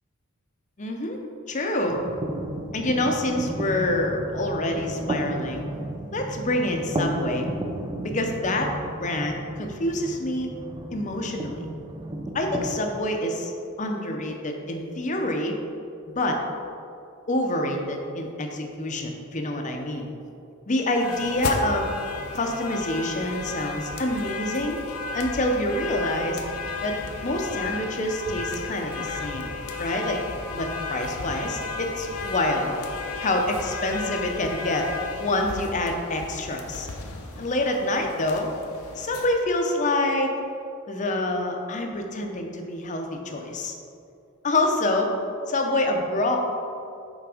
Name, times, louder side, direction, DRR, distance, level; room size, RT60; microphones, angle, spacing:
voice 1, 0.8-1.2 1.5-2.0 2.7-5.6 6.1-7.5 8.0-8.7 9.0-10.5 10.9-11.6 12.3-13.5 13.8-15.6 16.1-16.4 17.3-20.1 20.7-21.9 22.3-24.8 25.1-26.4 26.8-26.9 27.2-29.5 29.8-30.2 30.5-32.8 33.2-34.9 35.2-36.9 37.4-38.5 39.0-40.4 40.9-43.7 44.4-45.1 45.5-46.4, left 1 dB, 35° left, 3 dB, 0.6 m, -26 dB
sound 1, 1.9-12.8, right 1 dB, 20° right, 0.4 m, -33 dB
sound 2, 20.9-39.3, left 4 dB, 75° left, 0.6 m, -34 dB
5.9 x 4.0 x 4.9 m, 2.5 s
head